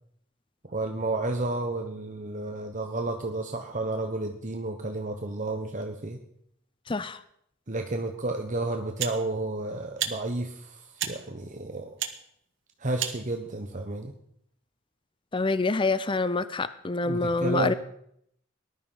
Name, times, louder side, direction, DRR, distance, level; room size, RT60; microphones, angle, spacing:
voice 1, 0.7-6.2 7.7-11.9 12.8-14.1 17.1-17.7, right 2 dB, 35° right, 4 dB, 1.2 m, -31 dB
voice 2, 6.9-7.2 15.3-17.7, left 3 dB, 25° left, 14 dB, 0.6 m, -26 dB
sound 1, 8.0-8.2 9.0-9.2 10.0-10.2 11.0-11.2 12.0-12.2 13.0-13.2, right 10 dB, 60° right, 1.6 m, -31 dB
19.0 x 12.0 x 5.6 m, 0.71 s
head